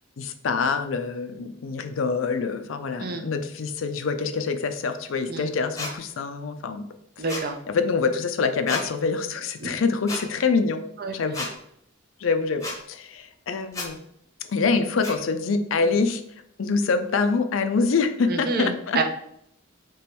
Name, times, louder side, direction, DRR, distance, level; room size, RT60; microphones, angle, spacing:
voice 1, 0.2-6.9 7.2-7.3 7.7-10.8 11.1-11.5 12.2-14.0 14.5-16.2 16.6-19.0, left 4 dB, 75° left, 8 dB, 0.5 m, -25 dB
sound 1, 5.8-5.9 7.3-7.5 8.7-8.9 10.1-10.2 11.3-11.5 12.6-12.8 13.7-13.9 15.0-15.2, left 2 dB, 15° left, 0.8 m, -31 dB
voice 2, 7.2-7.6 9.6-9.7 11.0-11.1 18.3-19.0, right 4 dB, 50° right, 5 dB, 0.6 m, -28 dB
3.5 x 3.0 x 4.4 m, 0.73 s
head